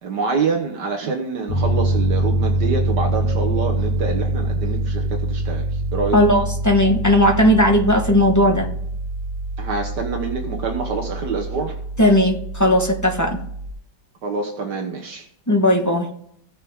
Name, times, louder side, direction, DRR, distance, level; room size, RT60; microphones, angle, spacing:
voice 1, 0.0-6.2 9.6-11.8 14.2-15.3, right 4 dB, 70° right, 1 dB, 1.8 m, -26 dB
Piano, 1.5-13.7, right 2 dB, 85° left, 2.0 m, -24 dB
voice 2, 6.1-8.7 12.0-13.4 15.5-16.1, left 1 dB, 10° left, 3 dB, 1.0 m, -16 dB
17.5 x 6.2 x 3.6 m, 0.67 s
omnidirectional pair, 1.9 m